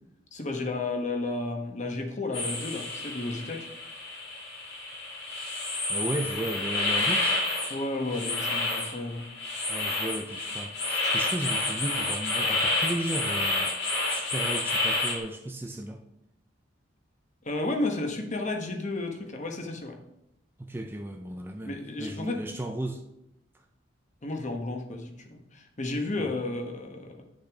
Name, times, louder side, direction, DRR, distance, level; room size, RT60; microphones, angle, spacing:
voice 1, 0.3-3.7 7.7-9.2 11.0-11.2 17.4-20.0 21.6-22.4 24.2-27.2, left 2 dB, 40° left, 4 dB, 1.0 m, -32 dB
sound 1, 2.3-15.2, left 2 dB, 55° left, 2.4 m, -29 dB
voice 2, 5.9-7.5 9.7-13.7 14.1-16.0 20.6-23.0 26.2-26.3, right 1 dB, 10° right, 4 dB, 0.4 m, -35 dB
9.7 x 6.5 x 3.5 m, 0.83 s
head